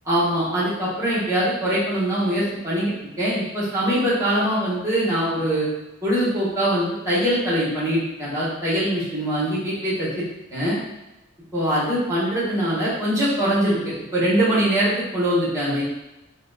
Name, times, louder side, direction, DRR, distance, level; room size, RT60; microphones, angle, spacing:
voice 1, 0.0-5.7 6.0-10.2 10.5-10.8 11.5-15.8, equal, 15° right, -9 dB, 1.1 m, -22 dB
3.9 x 2.1 x 2.3 m, 0.96 s
head